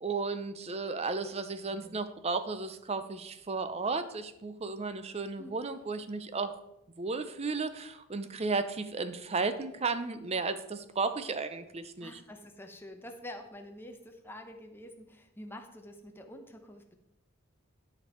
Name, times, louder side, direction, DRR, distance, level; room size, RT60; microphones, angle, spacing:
voice 1, 0.0-6.6 7.0-12.1, right 4 dB, 30° right, 11 dB, 0.6 m, -34 dB
voice 2, 1.7-2.0 5.4-5.6 12.0-17.0, left 1 dB, 10° left, 4 dB, 0.9 m, -47 dB
11.0 x 5.3 x 4.4 m, 0.87 s
head